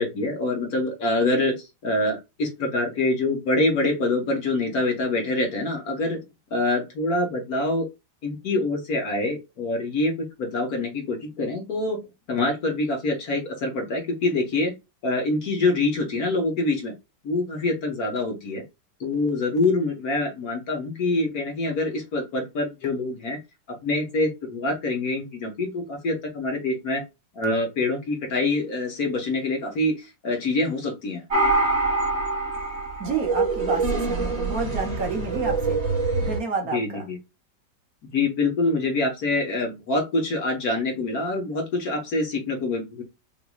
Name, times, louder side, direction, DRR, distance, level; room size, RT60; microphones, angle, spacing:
voice 1, 0.0-6.2 6.5-7.9 8.2-12.0 12.3-14.7 15.0-16.9 17.2-18.6 19.0-23.4 23.8-27.0 27.3-31.2 36.7-37.2 38.1-43.0, left 2 dB, 60° left, 1.8 m, -25 dB
sound 1, 31.3-36.4, right 3 dB, 40° right, 2.1 m, -25 dB
voice 2, 33.0-35.8 36.2-37.1, right 4 dB, 60° right, 1.4 m, -29 dB
6.1 x 2.9 x 2.3 m
omnidirectional pair, 1.9 m